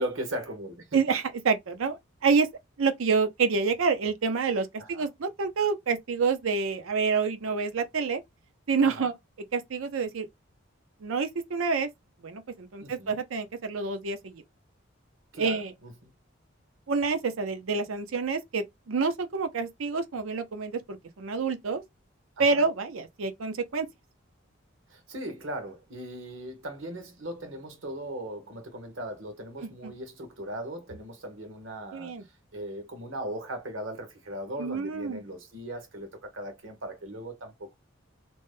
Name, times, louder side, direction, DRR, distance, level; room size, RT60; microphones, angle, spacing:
voice 1, 0.0-1.0 4.8-5.1 8.8-9.1 12.8-13.2 15.3-16.1 22.4-22.6 24.9-32.2 32.5-37.7, right 1 dB, 75° right, 1.1 m, -38 dB
voice 2, 0.9-2.5 2.8-8.2 8.7-9.1 9.5-10.3 11.0-11.9 12.2-14.4 15.4-15.7 16.9-21.8 22.4-23.9 29.8-29.9 31.9-32.2 34.6-35.2, right 5 dB, 90° right, 0.6 m, -28 dB
3.0 x 2.1 x 3.3 m
head